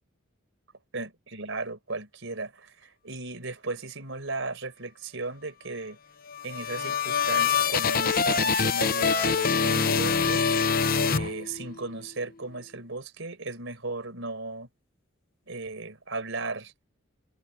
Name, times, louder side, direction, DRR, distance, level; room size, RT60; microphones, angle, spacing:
voice 1, 0.9-6.0 6.4-10.4 11.1-14.7 15.5-16.8, right 3 dB, 65° right, 4.6 m, -36 dB
sound 1, 6.3-11.9, left 6 dB, 45° left, 0.9 m, -25 dB
head